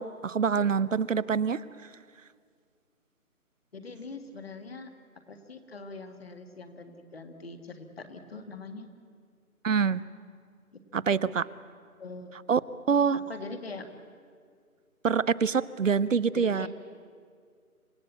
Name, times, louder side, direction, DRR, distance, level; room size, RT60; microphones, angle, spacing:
voice 1, 0.0-1.6 9.6-10.0 10.9-11.5 12.5-12.6 12.9-13.2 15.0-16.7, right 6 dB, 60° right, 18 dB, 0.7 m, -25 dB
voice 2, 3.7-4.9 5.3-8.9 10.7-11.4 12.0-12.3 13.3-13.9 16.3-16.7, left 3 dB, 40° left, 7 dB, 1.9 m, -43 dB
27.0 x 16.5 x 8.3 m, 2.1 s
hypercardioid pair, 170°, 44 cm